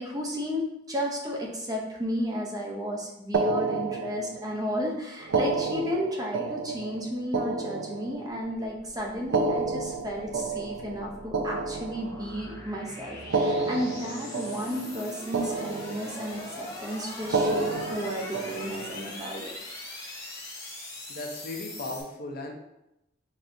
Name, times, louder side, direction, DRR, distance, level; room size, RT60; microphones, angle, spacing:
voice 1, 0.0-19.4, equal, 20° right, -1 dB, 0.6 m, -33 dB
sound 1, 3.3-4.6 5.2-8.5 9.2-12.5 13.2-15.1 15.3-16.4 17.2-19.0, right 3 dB, 80° right, 0.4 m, -30 dB
sound 2, 8.4-22.0, left 2 dB, 15° left, 0.7 m, -42 dB
voice 2, 21.1-22.5, left 2 dB, 50° left, 2 dB, 0.6 m, -36 dB
4.2 x 3.3 x 2.6 m, 0.87 s
head